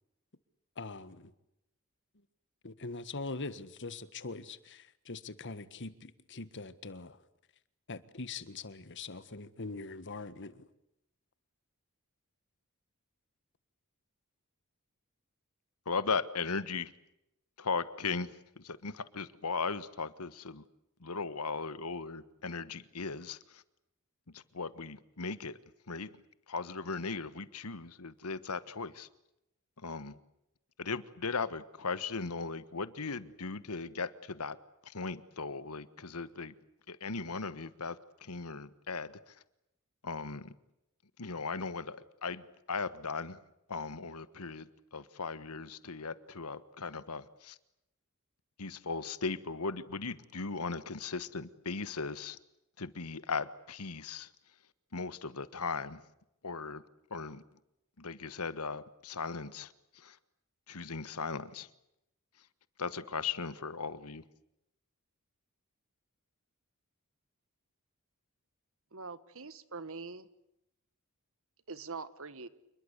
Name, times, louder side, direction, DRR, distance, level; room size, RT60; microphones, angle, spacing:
voice 1, 0.8-1.3 2.6-7.2 7.9-10.7, left 3 dB, 55° left, 14 dB, 1.6 m, -42 dB
voice 2, 15.8-16.9 17.6-20.6 21.0-23.6 24.3-25.6 25.9-26.1 26.5-29.1 29.8-30.1 30.8-34.6 34.8-36.5 36.9-39.4 40.0-40.5 41.2-43.4 43.7-47.6 48.6-52.4 52.8-54.3 54.9-56.0 56.4-56.8 57.1-57.4 58.0-60.2 60.7-61.7 62.8-64.2, left 4 dB, 90° left, 15 dB, 1.4 m, -38 dB
voice 3, 68.9-70.3 71.7-72.5, right 4 dB, 70° right, 15 dB, 1.6 m, -43 dB
28.5 x 21.5 x 8.2 m, 0.84 s
head